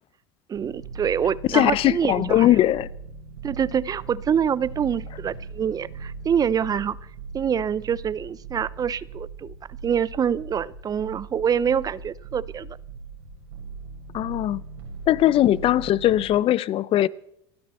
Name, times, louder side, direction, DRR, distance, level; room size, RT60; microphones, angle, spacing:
voice 1, 0.5-2.5 3.4-7.0 7.3-9.5 9.8-12.8, right 8 dB, 30° right, 0.6 m, -25 dB
sound 1, 0.5-16.2, right 4 dB, 90° right, 7.1 m, -39 dB
voice 2, 1.5-2.9 14.1-14.6 15.1-17.1, left 13 dB, 45° left, 0.6 m, -20 dB
29.0 x 10.0 x 4.3 m
supercardioid pair, 95°, 13 cm